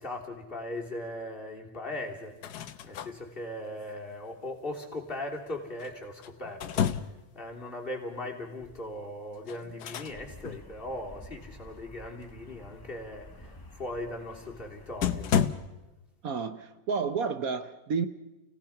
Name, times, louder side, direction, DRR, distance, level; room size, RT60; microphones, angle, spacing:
voice 1, 0.0-2.3 2.8-15.3, left 1 dB, 30° left, 0 dB, 3.5 m, -39 dB
sound 1, 2.2-3.1 5.8-7.3 9.5-10.2 10.4-10.6 14.5-14.6 15.0-15.5, left 8 dB, 70° left, 1.4 m, -30 dB
sound 2, 10.1-15.7, left 1 dB, 15° left, 1.2 m, -51 dB
voice 2, 16.2-18.1, right 5 dB, 60° right, 11 dB, 1.2 m, -31 dB
30.0 x 17.5 x 5.9 m, 1.1 s
omnidirectional pair, 1.9 m